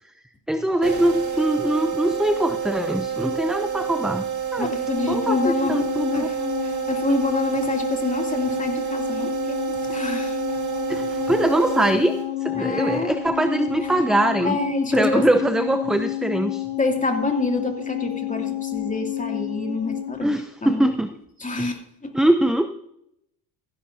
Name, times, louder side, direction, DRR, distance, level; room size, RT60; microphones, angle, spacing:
voice 1, 0.5-4.2 4.5-4.7 5.1-6.3 10.9-12.1 12.4-14.6 14.9-16.7 20.2-21.1 22.1-22.7, right 1 dB, ahead, 9 dB, 0.6 m, -22 dB
sound 1, 0.8-12.5, right 8 dB, 35° right, 4.1 m, -29 dB
voice 2, 4.6-10.4 12.6-13.2 14.4-15.3 16.8-20.3 20.6-20.9 21.4-22.1, left 2 dB, 15° left, 2 dB, 2.6 m, -27 dB
sound 2, 4.9-20.3, left 12 dB, 70° left, 4.5 m, -30 dB
15.5 x 11.5 x 2.7 m, 0.77 s
supercardioid pair, 75°, 50 cm